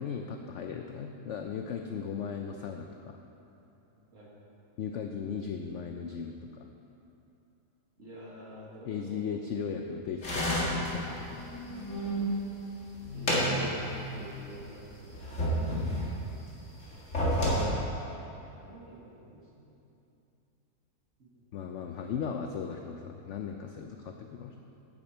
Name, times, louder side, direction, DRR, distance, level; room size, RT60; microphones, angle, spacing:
voice 1, 0.0-3.2 4.8-6.7 8.8-11.4 11.7-12.0 21.5-24.6, left 6 dB, 75° left, 4 dB, 0.6 m, -37 dB
voice 2, 3.9-4.3 8.0-9.4 13.1-15.7 18.5-19.7, right 1 dB, 50° right, -5 dB, 2.1 m, -49 dB
sound 1, 10.2-12.3 12.7-14.1 14.4-14.5 15.1-16.3 16.9-17.6, equal, 45° left, 2.2 m, -30 dB
11.0 x 8.7 x 4.4 m, 2.9 s
omnidirectional pair, 1.8 m